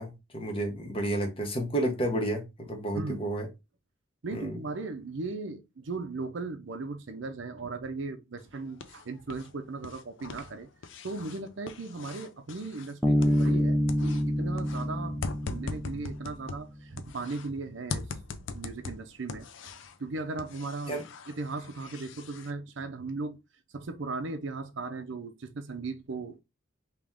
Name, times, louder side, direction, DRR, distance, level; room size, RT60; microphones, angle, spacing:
voice 1, 0.0-3.5 4.3-4.5 20.9-21.0, right 1 dB, 25° left, 0.9 m, -31 dB
voice 2, 2.9-3.3 4.2-10.7 11.0-18.1 18.5-19.5 20.0-21.0 21.3-23.4 23.7-26.4, right 3 dB, 65° right, 0.5 m, -37 dB
sound 1, 8.4-9.5 9.8-13.6 13.9-17.5 17.9-20.0 20.4-22.5, left 4 dB, 65° left, 0.5 m, -41 dB
Bass guitar, 13.0-16.6, equal, ahead, 0.4 m, -27 dB
3.4 x 2.9 x 3.5 m
head